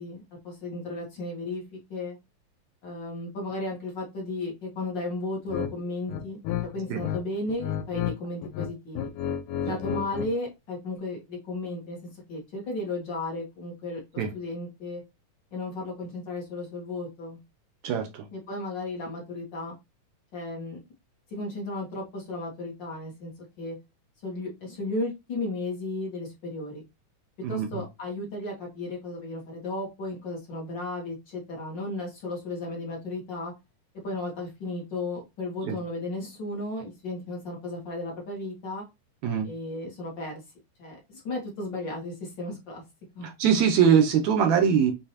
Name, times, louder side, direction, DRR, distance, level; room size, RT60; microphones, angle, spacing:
voice 1, 0.0-2.2 2.8-6.4 6.7-9.1 9.6-15.0 15.5-17.4 18.3-19.7 20.3-20.8 21.3-23.7 24.2-26.8 27.5-33.5 34.0-38.8 39.4-40.4 40.8-42.8 43.1-43.3, left 2 dB, 50° left, 1.4 m, -34 dB
sound 1, 5.5-5.7 6.1-7.2 7.5-8.1 8.4-10.3, left 10 dB, 85° left, 2.1 m, -31 dB
voice 2, 17.8-18.3 27.4-27.8 35.7-35.8 39.2-39.5 43.4-44.9, right 7 dB, 75° right, 1.7 m, -22 dB
6.7 x 2.6 x 2.9 m
omnidirectional pair, 3.7 m